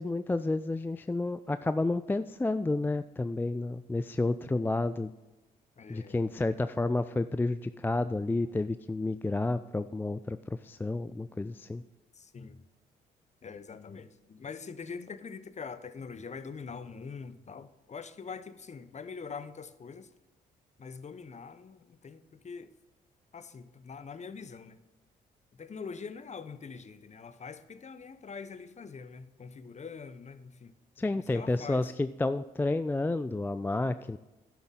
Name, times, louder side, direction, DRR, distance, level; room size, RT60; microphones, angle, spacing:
voice 1, 0.0-5.1 5.9-11.8 31.0-34.2, left 2 dB, 10° left, 0.3 m, -30 dB
voice 2, 5.8-6.2 12.2-12.6 13.4-20.1 20.8-22.7 23.3-24.8 25.5-30.7 31.0-31.9, left 5 dB, 35° left, 0.8 m, -44 dB
11.0 x 7.2 x 3.8 m
hypercardioid pair, 45°, 21 cm